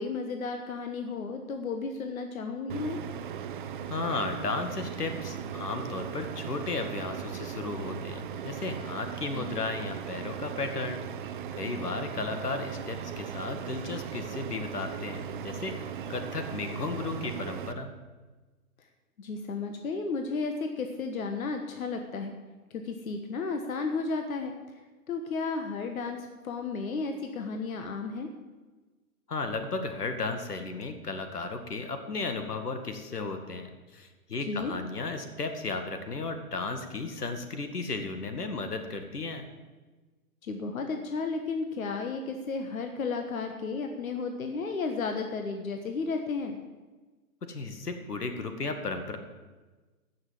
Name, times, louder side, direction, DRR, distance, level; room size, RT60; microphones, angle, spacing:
voice 1, 0.0-3.0 9.3-9.6 19.2-22.3 22.7-24.5 25.1-28.3 34.5-34.7 40.4-46.6, left 4 dB, 65° left, 5 dB, 1.5 m, -33 dB
sound 1, 2.7-17.7, right 8 dB, 35° right, 0.7 m, -38 dB
voice 2, 3.9-11.0 11.6-15.8 16.1-17.9 29.3-39.5 47.4-49.2, left 3 dB, 85° left, 6 dB, 2.1 m, -34 dB
15.0 x 6.4 x 7.6 m, 1.3 s
hypercardioid pair, 140°, 45 cm